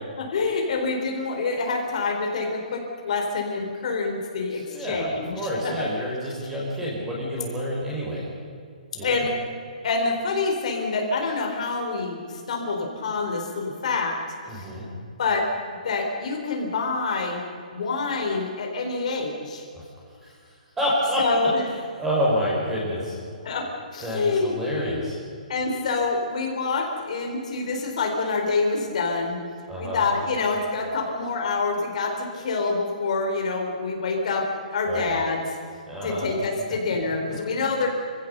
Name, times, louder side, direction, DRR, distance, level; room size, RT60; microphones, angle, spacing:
voice 1, 0.2-5.8 6.9-7.1 9.0-9.3 9.8-14.2 14.5-14.7 15.2-15.5 15.8-17.4 17.7-19.6 21.2-21.6 23.4-25.0 25.5-29.4 29.8-34.5 34.7-35.6 36.0-37.9, left 3 dB, 50° left, 1 dB, 4.1 m, -26 dB
voice 2, 4.5-8.2 8.9-9.2 14.5-14.9 19.7-19.9 20.2-20.3 20.8-21.2 22.0-23.2 24.0-25.2 29.7-30.0 34.8-35.1 35.9-36.3, equal, 5° right, -4 dB, 5.4 m, -28 dB
26.5 x 16.5 x 6.8 m, 2.3 s
hypercardioid pair, 165°, 5 cm